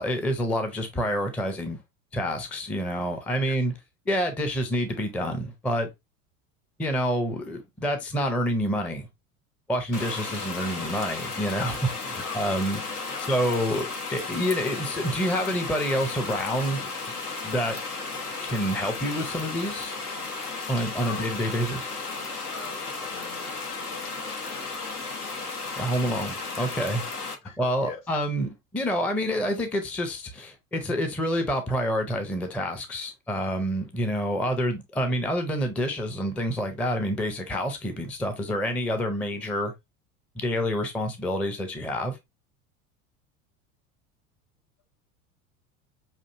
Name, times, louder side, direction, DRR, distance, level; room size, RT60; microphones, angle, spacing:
voice 1, 0.0-1.8 2.1-3.7 4.1-5.9 6.8-9.1 9.7-12.8 13.3-16.9 17.4-17.8 18.4-20.0 20.7-21.9 25.8-27.0 27.6-39.7 40.4-42.2, equal, 5° left, 0.4 m, -28 dB
sound 1, 9.9-27.3, left 4 dB, 85° left, 0.9 m, -34 dB
voice 2, 20.9-21.4 22.5-25.2 25.5-25.6 27.4-28.0, left 5 dB, 65° left, 2.0 m, -43 dB
5.6 x 2.5 x 2.5 m
figure-of-eight pair, 80°, 44 cm